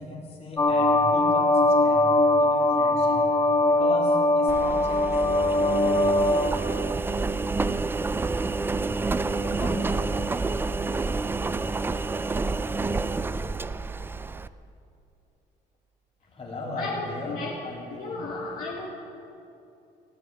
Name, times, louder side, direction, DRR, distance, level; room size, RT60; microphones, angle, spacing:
voice 1, 0.0-2.1 2.4-3.2 3.7-5.2 5.5-6.0 9.3-10.2 16.3-18.4, left 1 dB, 35° left, -2 dB, 3.3 m, -38 dB
sound 1, 0.6-6.5, left 2 dB, 20° left, 1.1 m, -21 dB
Engine, 4.5-14.5, right 3 dB, 15° right, 0.3 m, -28 dB
voice 2, 16.8-17.6 17.9-18.9, left 3 dB, 55° left, -4 dB, 1.9 m, -34 dB
15.5 x 6.5 x 9.1 m, 2.7 s
cardioid pair, 110°, 17 cm